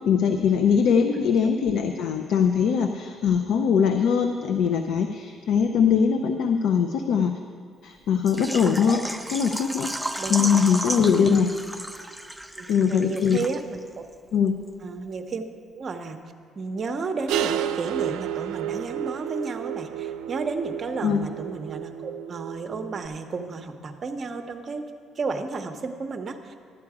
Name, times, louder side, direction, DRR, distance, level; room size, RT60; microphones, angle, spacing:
voice 1, 0.1-7.4 7.8-9.0 9.3-9.9 10.3-11.5 12.7-13.4 14.3-14.5 21.0-21.3, left 7 dB, 75° left, 6 dB, 0.5 m, -21 dB
voice 2, 1.1-1.6 10.2-11.5 12.6-14.0 14.8-15.4 15.7-16.2 16.6-24.8 25.2-26.6, right 4 dB, 35° right, 7 dB, 0.7 m, -33 dB
Water / Liquid, 8.3-13.9 14.1-14.2 14.7-14.8, right 1 dB, ahead, 0.4 m, -33 dB
sound 1, 17.3-23.1, right 10 dB, 85° right, 0.3 m, -31 dB
12.0 x 8.4 x 4.8 m, 2.2 s
cardioid pair, 140°, 0 cm